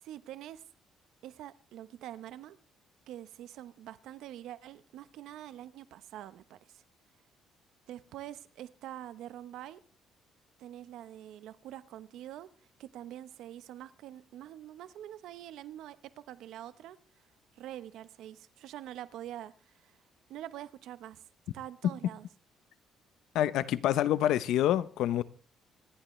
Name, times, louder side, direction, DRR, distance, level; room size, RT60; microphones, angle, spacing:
voice 1, 0.0-0.6 1.2-2.6 3.1-6.8 7.9-9.8 10.6-12.5 12.8-17.0 17.5-20.0 20.3-21.2 21.5-22.3, right 12 dB, 80° right, 1.0 m, -45 dB
voice 2, 23.3-25.2, left 12 dB, 80° left, 0.8 m, -27 dB
26.0 x 11.5 x 3.3 m
cardioid pair, 120°, 0 cm